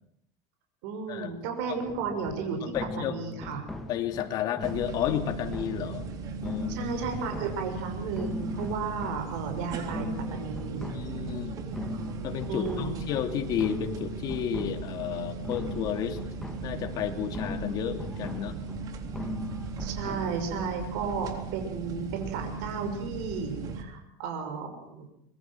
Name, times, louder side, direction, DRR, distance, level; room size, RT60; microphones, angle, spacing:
voice 1, 0.8-3.6 6.7-11.0 12.5-12.9 19.8-25.1, right 5 dB, 80° right, 5 dB, 6.0 m, -34 dB
sound 1, 1.8-20.4, left 2 dB, 5° left, 3.0 m, -40 dB
voice 2, 2.6-3.1 3.9-6.1 6.4-6.9 10.9-11.6 12.2-16.2 16.6-18.6, left 10 dB, 50° left, 6 dB, 3.0 m, -32 dB
sound 2, 4.6-23.8, right 5 dB, 45° right, 3.6 m, -38 dB
25.0 x 22.5 x 6.3 m, 0.74 s
supercardioid pair, 130°, 9 cm